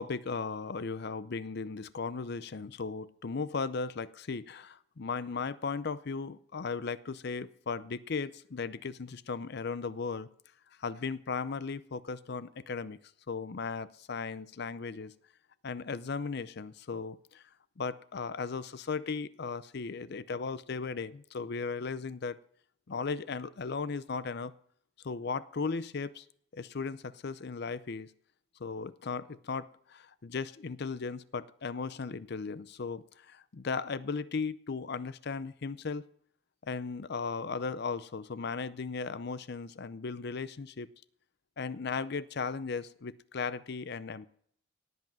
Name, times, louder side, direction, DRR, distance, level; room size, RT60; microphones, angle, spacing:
voice 1, 0.0-10.3 10.8-13.0 13.3-15.1 15.6-17.4 17.8-22.4 22.9-24.5 25.0-26.2 26.5-28.1 28.6-36.0 36.6-40.9 41.6-44.3, left 4 dB, 55° left, 16 dB, 0.6 m, -36 dB
18.0 x 8.2 x 6.2 m, 0.63 s
head